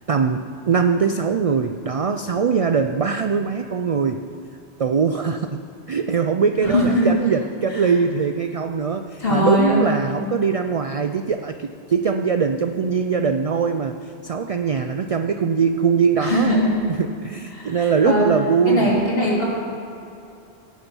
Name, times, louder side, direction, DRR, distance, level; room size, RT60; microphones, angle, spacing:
voice 1, 0.1-4.2 4.8-5.6 5.9-16.5 16.9-18.9, right 6 dB, 65° right, 7 dB, 0.3 m, -21 dB
voice 2, 6.6-7.1 7.7-7.8 9.2-9.8 16.2-16.8 17.5-18.3 18.7-19.5, left 1 dB, 60° left, -6 dB, 3.1 m, -20 dB
17.0 x 7.1 x 5.4 m, 2.6 s
omnidirectional pair, 1.1 m